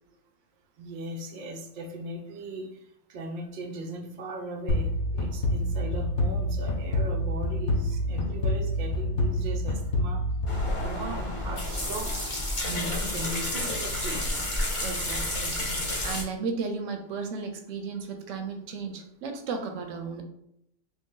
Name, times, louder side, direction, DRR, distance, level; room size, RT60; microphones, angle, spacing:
voice 1, 0.8-2.7 3.1-10.3 10.8-14.3, right 1 dB, 60° right, 3 dB, 0.5 m, -38 dB
sound 1, 4.7-11.3, left 1 dB, 65° left, 0.9 m, -28 dB
sound 2, 10.5-16.2, left 1 dB, 30° left, 0.7 m, -30 dB
voice 2, 14.8-20.2, right 4 dB, 75° right, 5 dB, 0.9 m, -35 dB
2.9 x 2.7 x 3.7 m, 0.77 s
omnidirectional pair, 1.3 m